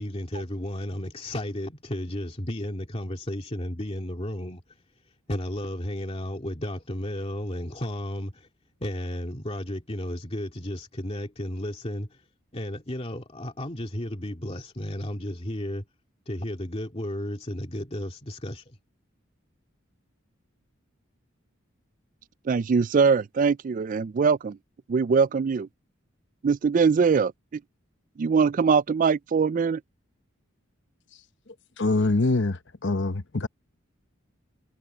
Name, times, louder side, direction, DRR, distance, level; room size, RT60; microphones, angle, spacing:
voice 1, 0.0-4.6 5.3-8.5 8.8-12.2 12.5-15.9 16.3-18.8, left 1 dB, 30° left, 2.4 m, -33 dB
voice 2, 22.5-24.6 24.9-25.7 26.4-27.3 28.2-29.8, right 5 dB, 40° right, 0.3 m, -22 dB
voice 3, 31.8-33.5, left 2 dB, 60° left, 1.0 m, -24 dB
head